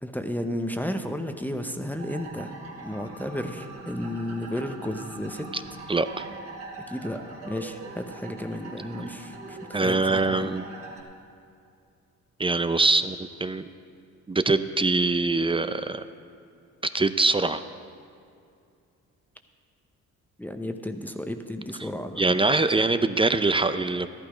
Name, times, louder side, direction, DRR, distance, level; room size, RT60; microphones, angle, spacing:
voice 1, 0.0-2.5 2.8-5.5 6.9-10.6 20.4-22.2, left 1 dB, 5° left, 6 dB, 0.8 m, -33 dB
sound 1, 2.0-11.0, right 3 dB, 50° right, 2.6 m, -42 dB
voice 2, 5.9-6.3 9.7-10.6 12.4-13.2 13.4-13.7 14.3-16.0 16.9-17.6 22.2-24.1, right 3 dB, 20° right, 11 dB, 0.5 m, -23 dB
13.5 x 11.5 x 5.0 m, 2.4 s
cardioid pair, 90°, 30 cm